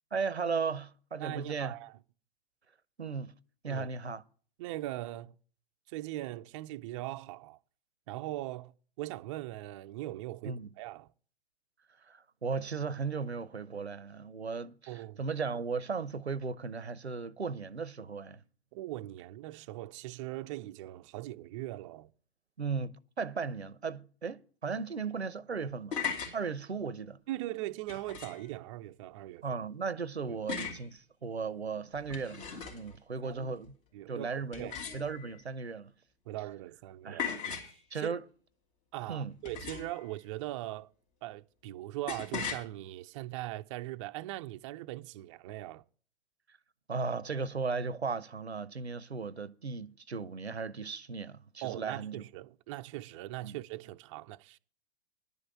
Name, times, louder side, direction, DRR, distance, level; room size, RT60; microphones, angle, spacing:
voice 1, 0.1-1.7 3.0-3.3 3.6-4.2 10.4-10.7 12.0-18.4 22.6-26.0 26.3-27.2 29.4-33.8 34.1-35.9 37.0-37.3 37.9-38.2 39.1-39.3 46.9-52.2 53.4-53.6, right 5 dB, 85° right, 0.7 m, -36 dB
voice 2, 1.2-1.9 3.7-3.9 4.6-5.3 5.9-7.6 8.1-8.7 9.0-11.1 14.9-15.2 18.7-22.1 27.3-29.4 33.2-33.5 33.9-34.8 36.3-37.6 38.0-38.1 38.9-40.9 41.2-45.8 51.6-54.6, right 16 dB, 30° right, 0.4 m, -40 dB
sound 1, 25.7-26.4 27.9-28.5 30.5-30.9 31.9-32.9 34.5-35.4 37.2-37.8 39.5-40.0 42.1-42.6, left 6 dB, 55° left, 3.0 m, -38 dB
11.0 x 5.3 x 8.4 m
figure-of-eight pair, 105°, 32 cm